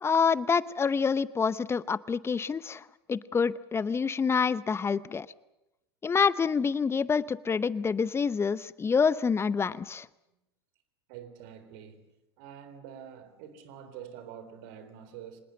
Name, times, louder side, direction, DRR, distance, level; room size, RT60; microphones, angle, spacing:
voice 1, 0.0-5.3 6.0-10.1, left 5 dB, 20° left, 0.8 m, -27 dB
voice 2, 11.1-15.4, right 9 dB, 55° right, 3.9 m, -46 dB
25.5 x 19.5 x 7.8 m
hypercardioid pair, 95°, 14 cm